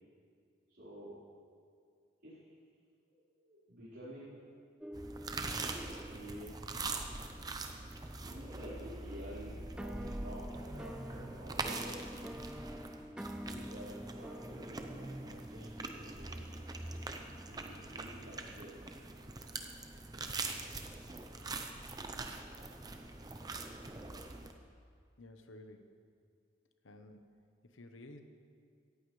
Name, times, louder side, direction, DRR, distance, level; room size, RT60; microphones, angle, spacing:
voice 1, 0.7-1.2 2.2-2.5 3.1-4.4 6.1-6.5 8.2-12.3 13.0-16.5 17.5-18.8, equal, 70° right, -13 dB, 4.3 m, -50 dB
sound 1, 4.8-8.2 9.8-18.3, equal, 5° right, 0.3 m, -48 dB
sound 2, 4.9-24.5, right 3 dB, 20° right, 0.7 m, -43 dB
voice 2, 25.2-25.9 26.8-27.4 27.6-28.2, left 1 dB, 85° left, 6 dB, 1.1 m, -53 dB
17.5 x 14.5 x 3.3 m, 2.3 s
head